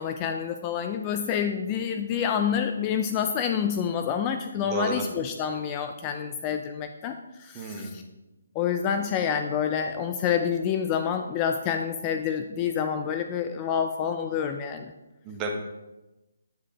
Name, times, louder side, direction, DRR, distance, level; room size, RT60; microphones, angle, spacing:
voice 1, 0.0-8.0 8.6-14.9, left 8 dB, 25° left, 6 dB, 0.3 m, -28 dB
voice 2, 4.6-5.0 7.5-7.9 15.3-15.5, right 3 dB, 20° right, 1 dB, 0.9 m, -31 dB
9.1 x 4.7 x 2.9 m, 1.0 s
hypercardioid pair, 155°, 0 cm